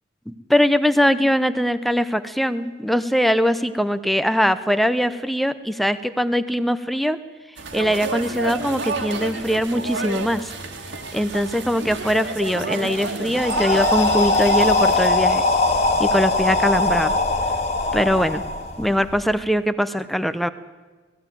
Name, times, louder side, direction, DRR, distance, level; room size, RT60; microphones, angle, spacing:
voice 1, 0.3-7.2 7.7-10.5 11.1-15.4 16.0-17.2 17.9-18.4 18.8-20.5, equal, ahead, 12 dB, 0.7 m, -21 dB
sound 1, 7.6-15.1, right 3 dB, 70° right, 2.1 m, -30 dB
sound 2, 13.3-19.2, left 2 dB, 35° left, 1.8 m, -21 dB
18.5 x 15.0 x 9.1 m, 1.3 s
head